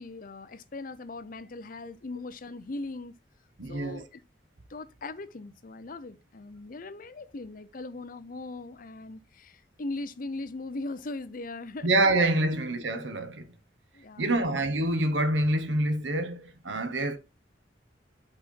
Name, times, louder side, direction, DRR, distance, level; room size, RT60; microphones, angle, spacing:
voice 1, 0.0-3.1 3.7-4.2 4.7-11.9 12.4-12.5 13.9-14.4, left 2 dB, 50° left, 0.6 m, -39 dB
voice 2, 3.6-4.1 11.8-13.5 14.2-17.2, right 2 dB, 85° right, 1.0 m, -26 dB
5.4 x 4.2 x 5.4 m
head